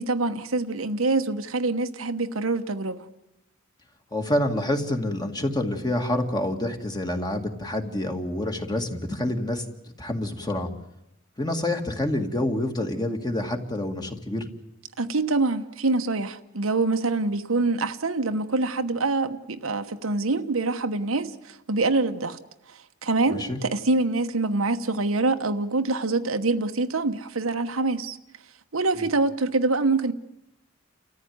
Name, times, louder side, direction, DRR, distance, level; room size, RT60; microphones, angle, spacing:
voice 1, 0.0-3.1 15.0-22.4 22.7-28.2 28.7-30.1, right 3 dB, 90° right, 1.2 m, -25 dB
voice 2, 4.1-9.6 10.0-10.7 11.4-14.5 23.3-23.6 29.0-29.1, left 1 dB, 20° left, 2.1 m, -27 dB
30.0 x 14.0 x 9.5 m
head